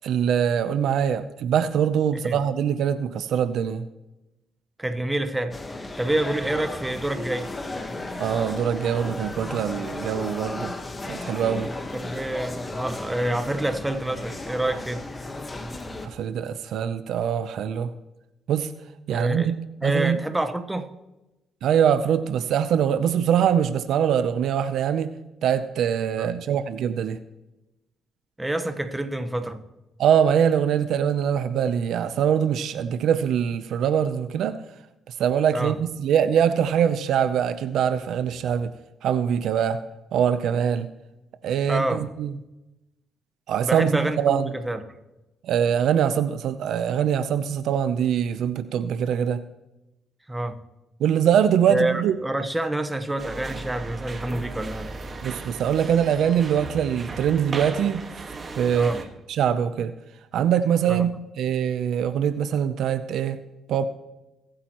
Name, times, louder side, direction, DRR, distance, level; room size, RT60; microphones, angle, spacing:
voice 1, 0.0-3.8 8.2-10.7 11.1-11.7 16.0-17.9 18.5-18.7 19.1-19.5 19.8-20.2 21.6-25.1 25.4-27.2 30.0-34.6 35.2-38.7 39.0-39.8 40.1-40.9 41.4-42.3 43.5-44.5 45.4-49.4 51.0-52.2 55.2-58.1 58.6-58.9 59.3-59.9 60.3-61.1 61.4-63.4 63.7-63.9, right 8 dB, 75° right, 0.6 m, -23 dB
voice 2, 4.8-7.5 11.7-15.0 19.1-19.5 19.8-20.9 26.2-26.3 28.4-29.6 35.5-35.8 41.7-42.1 43.6-44.8 50.3-50.6 51.7-54.9 58.7-59.0 60.9-61.1, right 1 dB, 10° right, 1.1 m, -27 dB
sound 1, 5.5-16.1, left 2 dB, 25° left, 1.4 m, -35 dB
sound 2, 53.2-59.1, right 3 dB, 35° right, 1.6 m, -36 dB
22.5 x 8.8 x 3.0 m
cardioid pair, 90°, 0 cm